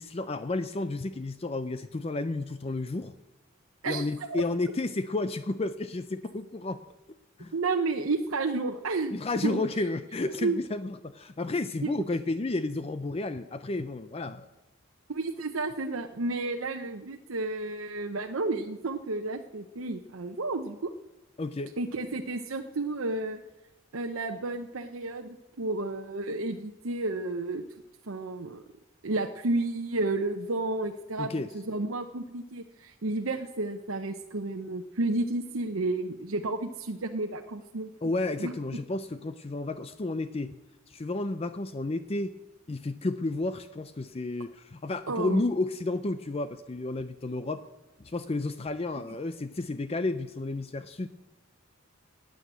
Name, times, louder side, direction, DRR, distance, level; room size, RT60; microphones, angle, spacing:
voice 1, 0.0-3.1 3.8-6.8 7.4-7.5 9.1-14.5 21.4-21.7 31.2-31.5 38.0-40.6 40.9-42.3 42.7-47.7 48.0-51.1, left 2 dB, 30° left, 12 dB, 0.5 m, -32 dB
voice 2, 3.8-4.4 7.5-9.1 9.4-9.6 10.4-10.6 11.8-11.9 15.1-20.9 21.8-23.4 23.9-27.6 28.1-28.6 29.0-37.9 38.4-38.5 45.1-45.4, right 2 dB, 80° right, 4 dB, 0.9 m, -31 dB
17.0 x 9.4 x 8.2 m, 1.0 s
head